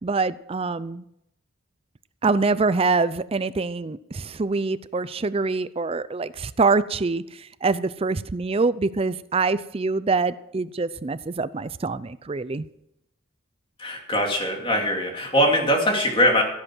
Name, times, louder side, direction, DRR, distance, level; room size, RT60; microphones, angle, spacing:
voice 1, 0.0-1.0 2.2-12.7, right 4 dB, 30° right, 16 dB, 0.4 m, -25 dB
voice 2, 13.8-16.4, equal, 25° left, 1 dB, 2.8 m, -21 dB
16.0 x 7.7 x 6.1 m, 0.78 s
head